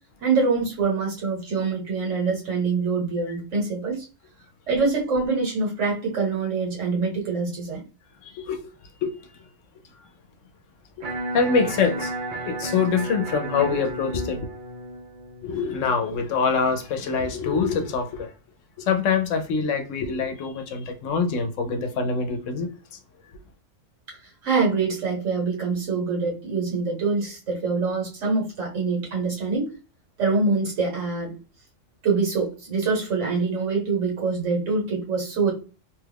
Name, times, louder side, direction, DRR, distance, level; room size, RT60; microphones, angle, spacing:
voice 1, 0.2-4.0 4.7-7.8 24.4-29.7 30.2-31.3 32.0-35.5, right 4 dB, 70° right, 1.6 m, -25 dB
voice 2, 8.2-8.6 9.0-9.1 11.3-12.1 12.5-14.5 15.4-18.3 18.8-22.7, left 5 dB, 75° left, 1.0 m, -24 dB
Electric guitar, 11.0-17.1, right 2 dB, 50° right, 0.7 m, -34 dB
3.1 x 2.3 x 3.3 m
omnidirectional pair, 1.3 m